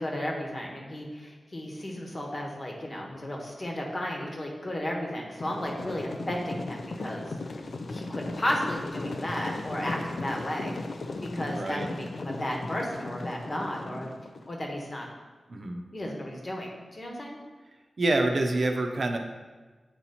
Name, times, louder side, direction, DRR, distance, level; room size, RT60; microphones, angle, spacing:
voice 1, 0.0-7.3 7.9-10.7 11.2-14.1 14.5-15.1 15.9-17.4, left 1 dB, 40° left, -1 dB, 1.2 m, -34 dB
sound 1, 5.4-14.5, left 2 dB, 70° left, 0.4 m, -37 dB
voice 2, 11.5-11.9 15.5-15.8 18.0-19.2, right 2 dB, 60° right, 4 dB, 0.6 m, -26 dB
8.2 x 2.9 x 4.2 m, 1.3 s
wide cardioid pair, 75°, 0 cm